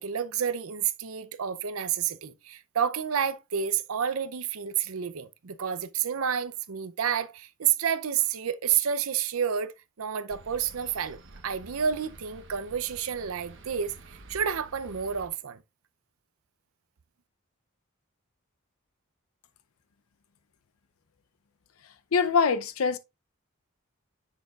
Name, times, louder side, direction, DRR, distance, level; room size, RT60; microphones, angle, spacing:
voice 1, 0.0-9.7 10.0-13.9 14.3-15.6, right 8 dB, 85° right, 0.6 m, -29 dB
sound 1, 10.3-15.3, right 2 dB, 60° right, 1.0 m, -50 dB
voice 2, 22.1-23.0, left 5 dB, 80° left, 0.6 m, -23 dB
7.1 x 6.4 x 2.4 m
head